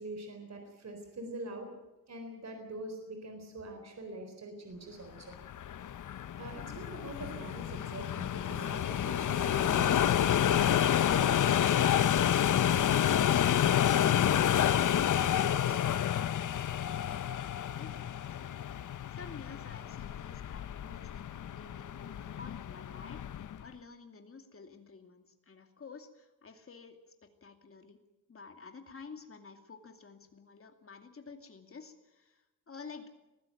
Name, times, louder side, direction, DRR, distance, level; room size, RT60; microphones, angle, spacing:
voice 1, 0.0-1.7 2.1-5.3 6.4-11.6, right 2 dB, 50° right, 5 dB, 4.1 m, -44 dB
sound 1, 5.3-23.6, left 10 dB, 65° left, 0.7 m, -29 dB
voice 2, 19.1-27.0 27.4-28.0 28.3-33.1, left 5 dB, 40° left, 5 dB, 2.6 m, -51 dB
21.0 x 15.5 x 9.1 m, 1.0 s
wide cardioid pair, 140°, 33 cm